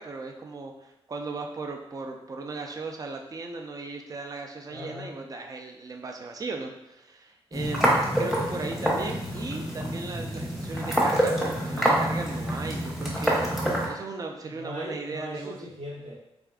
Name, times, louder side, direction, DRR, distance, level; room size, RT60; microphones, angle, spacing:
voice 1, 0.0-7.9 8.2-13.5 13.8-15.6, right 3 dB, 35° right, 3 dB, 0.4 m, -37 dB
voice 2, 4.7-5.2 14.5-16.2, equal, 70° right, -6 dB, 1.5 m, -39 dB
sound 1, 7.5-13.9, right 1 dB, ahead, 0.9 m, -26 dB
3.5 x 3.4 x 2.4 m, 0.90 s
wide cardioid pair, 125°, 10 cm